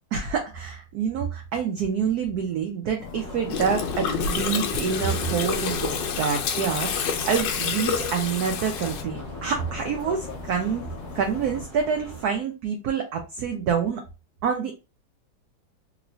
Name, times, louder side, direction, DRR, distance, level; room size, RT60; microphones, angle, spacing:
voice 1, 0.1-14.0 14.4-14.7, right 6 dB, 90° right, 3 dB, 0.8 m, -27 dB
sound 1, 3.0-11.7, left 4 dB, 85° left, 1.4 m, -39 dB
sound 2, 3.1-12.3, right 2 dB, 35° right, 0.9 m, -43 dB
Gurgling, 3.5-9.0, left 6 dB, 70° left, 1.2 m, -28 dB
3.1 x 3.0 x 2.6 m, 0.29 s
omnidirectional pair, 2.2 m